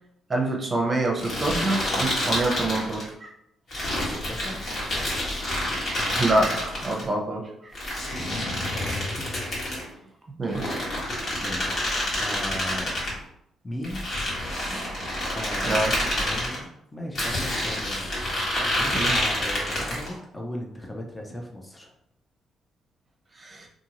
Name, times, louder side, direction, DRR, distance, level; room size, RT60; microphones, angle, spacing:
voice 1, 0.3-3.3 6.1-7.7 10.4-10.8 11.1-11.4 14.7-15.0 15.6-16.0 18.9-19.2 23.4-23.7, right 2 dB, 30° right, 1 dB, 0.7 m, -27 dB
sound 1, 1.2-3.1 3.7-7.0 7.7-9.9 10.5-13.1 13.8-16.6 17.1-20.1, left 1 dB, 55° left, 1.3 m, -28 dB
voice 2, 3.9-4.7 8.7-9.3 11.1-12.9 13.6-14.3 15.3-21.9, left 1 dB, 15° left, 0 dB, 0.5 m, -37 dB
2.7 x 2.6 x 2.8 m, 0.75 s
cardioid pair, 90°, 0 cm